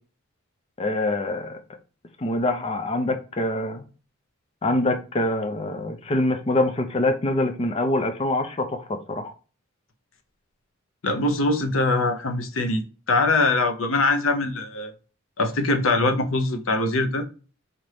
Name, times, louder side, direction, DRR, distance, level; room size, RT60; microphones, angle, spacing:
voice 1, 0.8-1.6 2.2-3.9 4.6-9.3, left 2 dB, 30° left, 0.4 m, -25 dB
voice 2, 11.0-12.8 13.1-14.9 15.4-17.3, left 2 dB, 80° left, 0.7 m, -22 dB
4.3 x 2.6 x 3.2 m
head